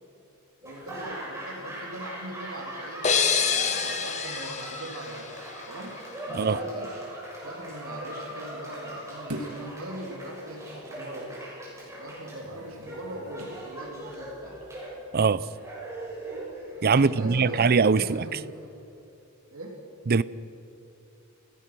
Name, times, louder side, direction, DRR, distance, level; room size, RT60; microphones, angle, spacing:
Laughter / Applause, 0.6-18.7, right 1 dB, 15° right, 6.3 m, -40 dB
voice 1, 0.6-6.0 6.3-7.0 7.4-11.4 12.0-14.6 16.9-18.6 19.5-19.8, right 1 dB, 70° right, 3.6 m, -40 dB
sound 1, 3.0-5.8, left 6 dB, 35° left, 1.4 m, -27 dB
sound 2, 9.3-9.8 12.4-13.7 14.2-14.4, right 1 dB, 85° right, 2.0 m, -40 dB
voice 2, 15.1-15.4 16.8-18.4 20.1-20.2, right 5 dB, 45° right, 0.5 m, -22 dB
29.0 x 17.0 x 6.2 m
head